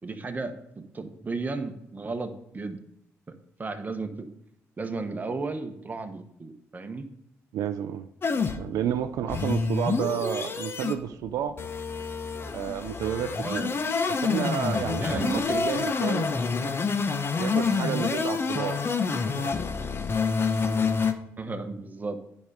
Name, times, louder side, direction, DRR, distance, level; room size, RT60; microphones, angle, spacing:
voice 1, 0.0-2.8 3.3-4.3 4.8-7.1 13.4-13.7 15.0-15.6 21.4-22.2, right 3 dB, 30° right, 6 dB, 1.2 m, -34 dB
voice 2, 7.5-8.1 8.6-11.6 12.5-13.7 14.1-16.3 17.4-18.8 19.3-19.5, right 10 dB, 80° right, 9 dB, 0.5 m, -31 dB
sound 1, 8.2-21.1, left 5 dB, 45° left, 1.0 m, -28 dB
9.6 x 5.4 x 5.1 m, 0.79 s
cardioid pair, 70°, 6 cm